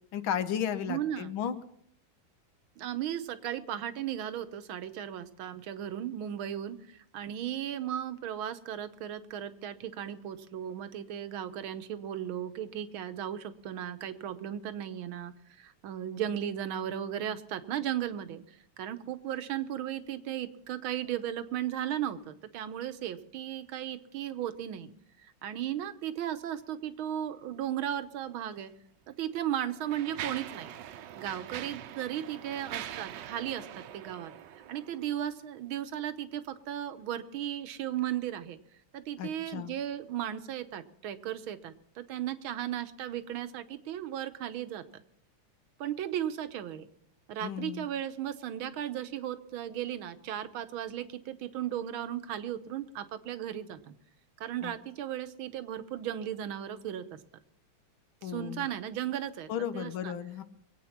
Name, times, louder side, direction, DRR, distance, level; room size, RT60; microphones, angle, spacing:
voice 1, 0.1-1.5 39.2-39.7 47.4-47.8 54.6-54.7 58.2-58.7 59.5-60.4, left 9 dB, 75° left, 11 dB, 1.7 m, -34 dB
voice 2, 0.8-1.3 2.8-24.9 25.2-28.7 29.1-30.7 31.2-33.7 33.9-34.3 34.7-38.6 38.9-45.0 45.8-46.9 47.3-53.9 54.4-57.2 58.2-60.1, right 11 dB, 85° right, 10 dB, 1.7 m, -36 dB
Mechanisms, 28.5-28.7 29.4-35.2, right 11 dB, 70° right, 1.3 m, -43 dB
23.0 x 8.6 x 5.9 m, 0.73 s
omnidirectional pair, 2.2 m